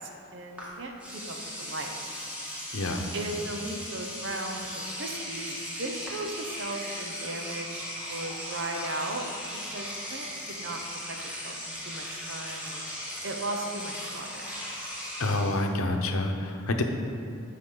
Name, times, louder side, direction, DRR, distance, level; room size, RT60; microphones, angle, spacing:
voice 1, 0.0-1.9 3.1-9.3 9.5-10.8 11.1-11.2 11.4-12.8 13.2-14.5, right 2 dB, 55° right, 3 dB, 0.9 m, -37 dB
Engine / Domestic sounds home sounds, 0.6-0.7 1.0-15.6, equal, 5° right, 1.6 m, -38 dB
voice 2, 2.7-3.0 15.2-16.8, left 2 dB, 75° left, 4 dB, 0.9 m, -27 dB
14.0 x 5.7 x 4.0 m, 2.5 s
head